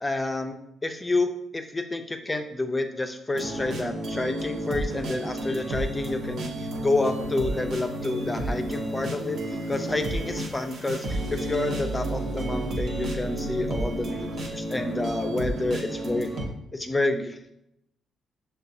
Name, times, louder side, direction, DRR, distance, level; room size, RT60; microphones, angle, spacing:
voice 1, 0.0-9.4 9.7-16.3 16.7-17.4, left 2 dB, 20° left, 6 dB, 0.4 m, -29 dB
sound 1, 3.3-16.4, right 1 dB, 65° right, 0.8 m, -31 dB
6.4 x 2.3 x 2.6 m, 0.81 s
cardioid pair, 90°, 0 cm